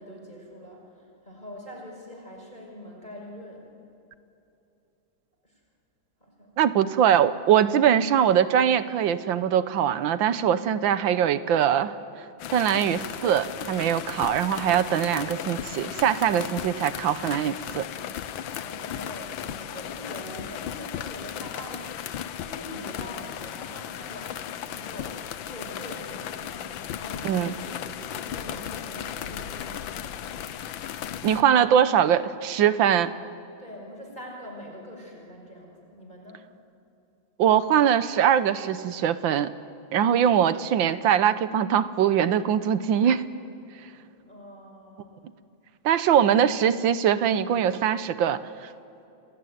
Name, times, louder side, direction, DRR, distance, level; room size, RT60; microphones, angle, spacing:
voice 1, 0.0-3.7 5.4-5.6 6.2-6.5 18.4-30.5 31.1-31.9 33.6-36.4 44.1-45.3, equal, 20° left, -1 dB, 5.8 m, -43 dB
voice 2, 6.6-11.9 12.5-17.8 27.2-27.5 31.2-33.1 37.4-39.5 39.9-43.3 45.8-48.7, right 9 dB, 75° right, 13 dB, 1.6 m, -22 dB
sound 1, 12.4-31.4, left 10 dB, 75° left, 1.6 m, -36 dB
29.5 x 18.5 x 9.4 m, 2.8 s
omnidirectional pair, 2.2 m